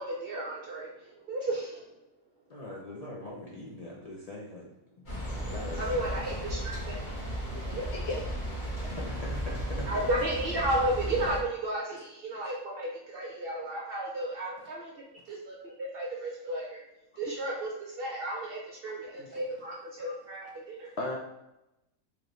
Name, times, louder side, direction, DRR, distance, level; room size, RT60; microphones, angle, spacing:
voice 1, 0.0-1.9 5.8-7.0 7.5-7.9 9.9-14.9 15.3-16.8 17.2-20.9, right 1 dB, 55° right, -2 dB, 0.7 m, -33 dB
voice 2, 2.5-4.7 5.1-6.2 8.8-9.9 15.3-15.4, left 1 dB, 80° left, -5 dB, 0.3 m, -42 dB
sound 1, 5.0-11.4, equal, 35° left, 1.1 m, -35 dB
voice 3, 7.9-8.2 8.5-8.7 15.3-15.4 17.3-17.4 19.2-19.3 20.0-20.1 21.0-21.2, left 2 dB, 60° left, 0 dB, 0.7 m, -36 dB
3.1 x 3.0 x 3.8 m, 0.90 s
omnidirectional pair, 1.6 m